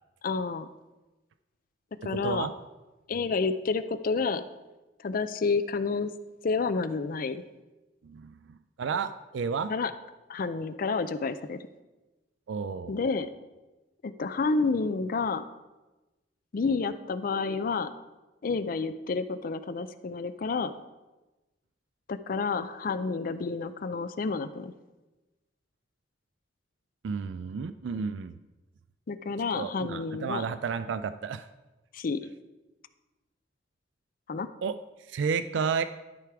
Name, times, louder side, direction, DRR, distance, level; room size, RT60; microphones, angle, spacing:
voice 1, 0.2-0.7 2.0-2.5 3.1-4.4 5.0-6.1 6.4-7.4 9.7-9.9 10.3-11.7 12.9-13.3 14.0-15.4 16.5-17.9 18.4-20.7 22.1-24.7 29.1-30.4 31.9-32.3 34.3-34.5, left 4 dB, 50° left, 12 dB, 0.4 m, -29 dB
voice 2, 2.0-2.5 8.0-9.7 12.5-13.0 27.0-28.4 29.5-31.5 34.6-34.8 35.1-35.8, right 5 dB, 80° right, 12 dB, 0.4 m, -32 dB
12.5 x 5.0 x 4.7 m, 1.1 s
head